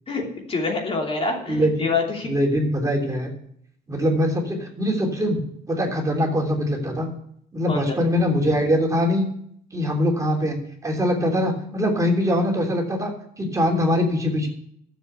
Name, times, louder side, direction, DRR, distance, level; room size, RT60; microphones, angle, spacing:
voice 1, 0.1-2.3 7.7-8.0, left 3 dB, 35° left, 0 dB, 3.0 m, -26 dB
voice 2, 1.5-1.9 2.2-3.3 3.9-5.4 5.7-7.1 7.5-9.2 9.7-10.6 10.8-13.1 13.4-14.5, equal, 20° right, 1 dB, 3.2 m, -22 dB
12.5 x 7.7 x 8.1 m, 0.68 s
cardioid pair, 110°, 17 cm